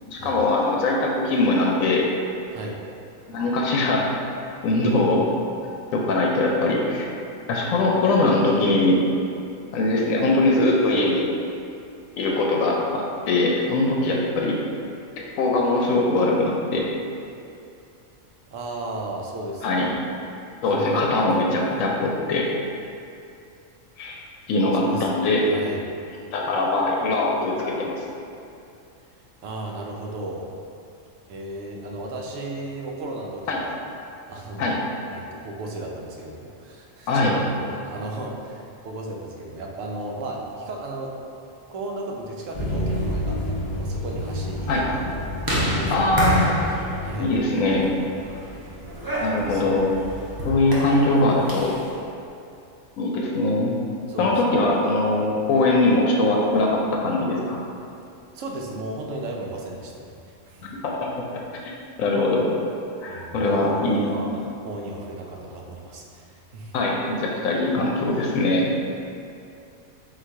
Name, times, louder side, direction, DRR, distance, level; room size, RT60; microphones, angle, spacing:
voice 1, 0.1-2.1 3.3-4.1 4.6-5.3 5.9-7.1 7.5-9.0 9.7-11.3 12.2-14.6 15.4-16.9 19.6-19.9 20.6-22.5 24.0-24.2 24.5-25.4 26.3-28.0 33.5-33.6 34.6-34.8 37.1-37.4 44.7-44.8 45.9-46.6 47.2-47.9 49.2-49.8 50.4-51.7 53.0-53.7 54.2-57.6 60.6-60.9 61.6-61.7 62.0-62.5 63.0-64.0 64.4-64.5 66.7-68.6, left 2 dB, 90° left, -1 dB, 1.0 m, -21 dB
voice 2, 18.4-19.9 20.6-21.8 24.7-25.1 25.4-25.8 29.4-30.5 31.3-33.8 34.3-34.8 35.1-41.1 41.7-45.1 45.6-46.4 47.0-47.3 49.5-49.8 54.1-54.3 58.3-60.1 60.4-60.7 63.0-66.8, right 2 dB, 75° right, -1 dB, 1.0 m, -34 dB
sound 1, 42.5-50.5, left 1 dB, 35° left, 0.3 m, -32 dB
sound 2, 42.8-51.9, equal, 25° right, 0.6 m, -30 dB
3.9 x 2.6 x 4.5 m, 2.6 s
omnidirectional pair, 1.4 m